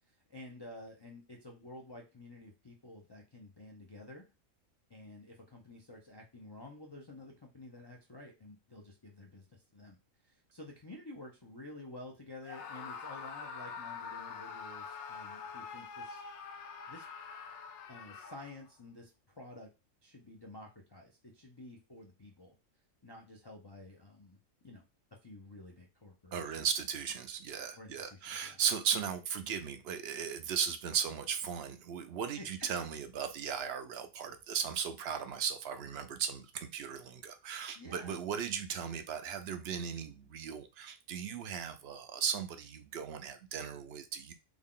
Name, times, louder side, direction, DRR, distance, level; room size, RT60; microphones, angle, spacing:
voice 1, 0.1-4.2 4.9-10.0 10.2-16.2 16.9-17.1 17.9-19.7 20.0-22.5 23.0-24.4 24.6-24.8 25.2-26.7 27.7-28.6 32.4-32.5 37.7-38.2, left 2 dB, 40° left, -1 dB, 0.3 m, -51 dB
Screaming, 12.4-18.7, left 6 dB, 70° left, 0.8 m, -45 dB
voice 2, 26.3-44.3, right 7 dB, 65° right, 8 dB, 0.7 m, -37 dB
3.6 x 2.3 x 3.7 m, 0.27 s
omnidirectional pair, 1.3 m